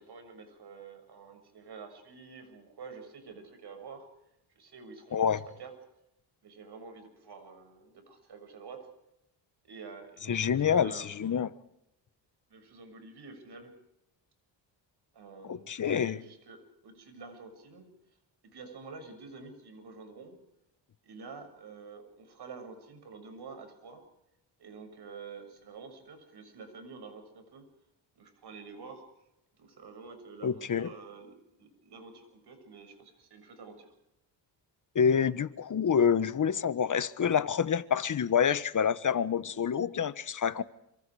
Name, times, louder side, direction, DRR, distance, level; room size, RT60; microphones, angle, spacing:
voice 1, 0.0-4.1 4.6-5.7 6.4-8.9 9.6-11.1 12.5-13.8 15.1-17.9 18.4-20.4 21.0-24.0 24.6-27.7 28.2-29.0 29.6-33.9, right 4 dB, 60° right, 6.9 m, -48 dB
voice 2, 5.1-5.4 10.3-11.5 15.5-16.2 30.4-30.9 34.9-40.6, left 7 dB, 40° left, 1.3 m, -27 dB
27.5 x 25.5 x 4.9 m
cardioid pair, 85°, 45 cm